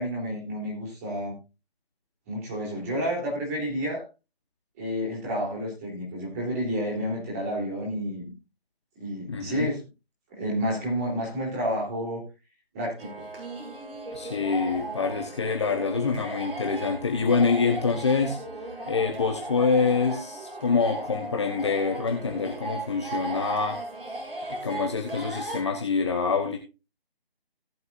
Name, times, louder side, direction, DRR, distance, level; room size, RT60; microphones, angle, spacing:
voice 1, 0.0-1.4 2.3-4.0 4.8-8.3 9.0-9.8 10.3-12.2 12.7-13.3, equal, 15° right, -2 dB, 3.5 m, -30 dB
voice 2, 9.3-9.7 14.1-18.4 18.9-23.8 24.5-26.6, left 5 dB, 30° left, 3 dB, 1.3 m, -26 dB
sound 1, 13.0-25.6, right 2 dB, 60° right, 6.8 m, -36 dB
18.0 x 7.7 x 2.6 m, 0.29 s
figure-of-eight pair, 155°, 31 cm